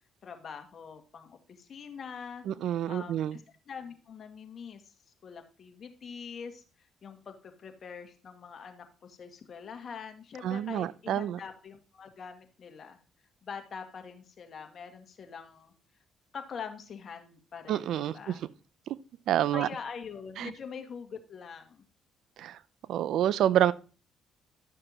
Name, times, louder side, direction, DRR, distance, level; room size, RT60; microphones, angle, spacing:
voice 1, 0.2-2.5 2.9-4.9 5.2-13.0 13.4-15.7 16.3-18.4 19.5-21.8, left 6 dB, 50° left, 1.9 m, -44 dB
voice 2, 2.5-3.4 10.4-11.4 17.7-18.3 18.9-19.0 19.3-19.7 20.4-20.5 22.4-22.6 22.9-23.7, right 11 dB, 75° right, 0.5 m, -28 dB
12.0 x 6.7 x 2.9 m
cardioid pair, 80°, 0 cm